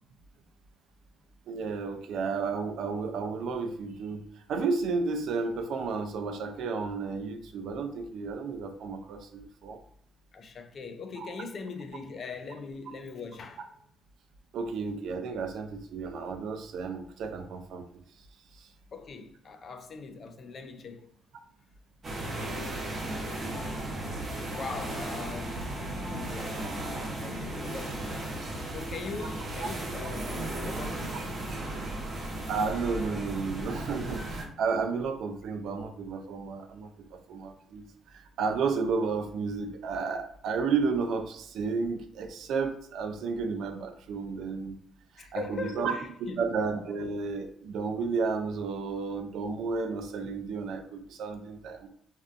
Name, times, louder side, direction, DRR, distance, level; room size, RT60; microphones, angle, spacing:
voice 1, 1.5-9.8 11.2-11.3 14.5-17.8 18.5-18.7 31.8-31.9 32.5-37.8 38.1-44.8 45.2-45.9 46.4-51.9, right 4 dB, 75° right, 0.3 m, -32 dB
voice 2, 10.3-13.8 18.9-21.1 22.9-23.2 23.7-24.1 24.5-31.2 45.2-46.4, left 4 dB, 50° left, 0.3 m, -41 dB
sound 1, 22.0-34.4, right 1 dB, 40° right, 0.8 m, -35 dB
sound 2, 22.9-27.2 27.5-27.6 27.9-28.3, left 2 dB, 10° right, 0.6 m, -49 dB
2.5 x 2.2 x 2.4 m
cardioid pair, 90°, 0 cm